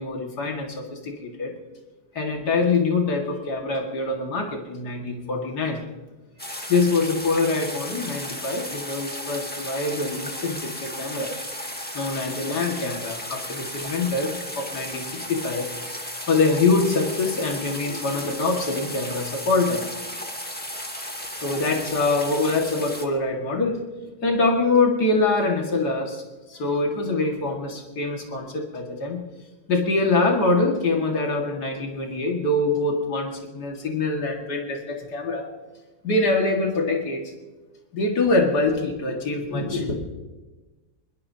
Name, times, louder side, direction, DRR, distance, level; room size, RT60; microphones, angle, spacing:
voice 1, 0.0-1.5 2.2-5.8 6.7-11.3 11.9-15.7 16.3-19.8 21.4-23.8 24.2-26.2 26.5-29.2 29.7-35.5 36.0-37.3 37.9-39.9, left 3 dB, 90° left, 0 dB, 2.5 m, -24 dB
sound 1, 6.4-23.1, left 1 dB, 5° left, 1.4 m, -35 dB
24.0 x 22.0 x 2.8 m, 1.2 s
omnidirectional pair, 1.7 m